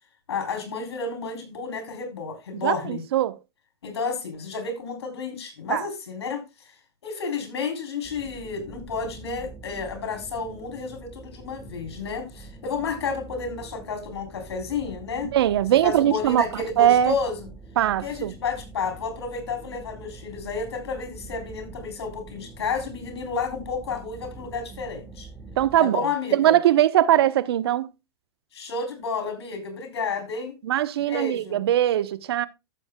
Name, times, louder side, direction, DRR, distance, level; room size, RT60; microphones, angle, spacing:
voice 1, 0.3-3.0 3.8-6.7 7.0-15.3 15.8-17.5 18.0-25.3 25.8-26.6 28.5-30.5 31.0-31.6, left 5 dB, 85° left, 3.5 m, -31 dB
voice 2, 2.6-3.3 5.7-5.8 15.3-17.1 17.8-18.3 25.6-26.0 26.3-27.9 30.6-32.5, right 12 dB, 75° right, 0.9 m, -21 dB
sound 1, 8.0-25.8, right 3 dB, 5° right, 2.0 m, -44 dB
14.5 x 7.2 x 2.2 m
hypercardioid pair, 115°, 13 cm